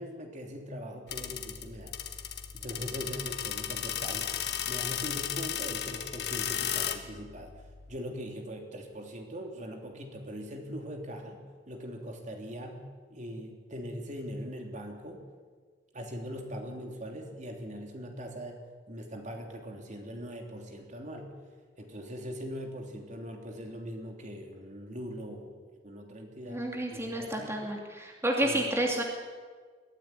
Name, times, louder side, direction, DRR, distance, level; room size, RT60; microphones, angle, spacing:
voice 1, 0.0-2.0 2.5-4.3 4.7-12.8 13.1-15.2 15.9-18.6 18.9-21.3 21.8-25.6 25.8-26.6 26.9-27.7 28.4-28.6, equal, 40° right, 3 dB, 3.2 m, -41 dB
sound 1, 1.1-8.0, left 9 dB, 65° left, 1.7 m, -35 dB
voice 2, 26.5-29.0, right 1 dB, 15° right, 0 dB, 2.6 m, -30 dB
22.0 x 15.0 x 9.8 m, 1.5 s
head